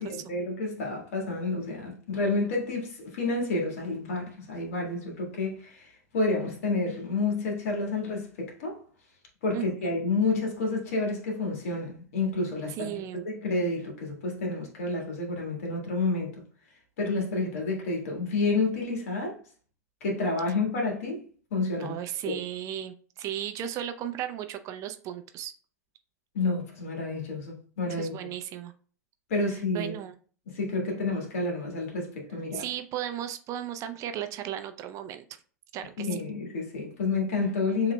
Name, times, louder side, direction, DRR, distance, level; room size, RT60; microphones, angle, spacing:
voice 1, 0.0-8.8 9.4-16.3 17.0-19.4 20.0-21.2 21.5-21.9 22.2-22.4 26.3-28.1 29.3-29.9 30.5-32.7 36.0-37.9, left 3 dB, 65° left, 1.7 m, -29 dB
voice 2, 12.8-13.2 21.8-25.5 27.9-28.7 29.7-30.1 32.5-35.2 35.7-36.1, right 11 dB, 40° right, 0.5 m, -35 dB
7.1 x 2.9 x 2.2 m
figure-of-eight pair, 90°, 8 cm